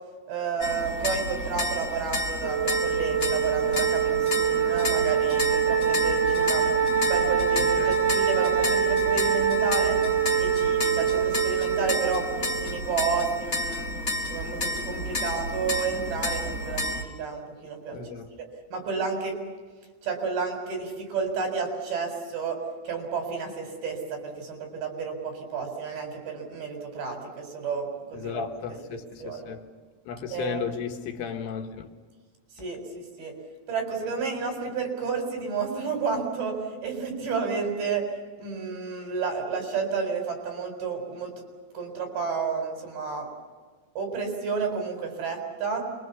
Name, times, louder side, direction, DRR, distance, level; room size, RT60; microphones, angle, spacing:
voice 1, 0.3-6.8 7.1-10.0 10.4-13.9 14.3-18.1 18.7-19.4 20.0-22.6 22.8-28.4 28.9-29.5 30.3-30.7 32.6-33.3 33.7-38.1 38.4-41.3 41.7-43.3 44.0-45.9, right 5 dB, 70° right, 6.2 m, -31 dB
sound 1, 0.6-17.0, left 1 dB, 60° left, 0.9 m, -31 dB
Wind instrument woodwind instrument, 2.4-12.8, right 8 dB, 30° right, 3.3 m, -25 dB
voice 2, 17.9-18.3 28.1-29.7 30.1-31.9, left 7 dB, 80° left, 3.6 m, -34 dB
26.5 x 22.5 x 7.0 m
omnidirectional pair, 4.6 m